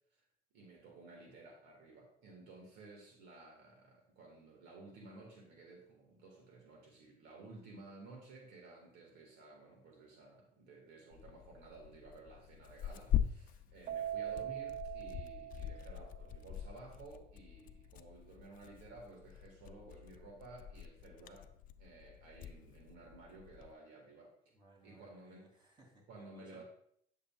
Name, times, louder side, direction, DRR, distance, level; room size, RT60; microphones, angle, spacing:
voice 1, 0.5-21.5 21.8-24.3 24.8-25.5 26.1-26.6, right 3 dB, 90° right, 1 dB, 1.9 m, -55 dB
Tearing, 11.1-23.7, left 10 dB, 55° left, 0.4 m, -43 dB
Keyboard (musical), 13.9-16.4, right 11 dB, 50° right, 0.4 m, -42 dB
voice 2, 24.5-26.6, right 1 dB, 30° right, -1 dB, 2.7 m, -63 dB
8.7 x 6.7 x 2.4 m, 0.66 s
cardioid pair, 110°, 17 cm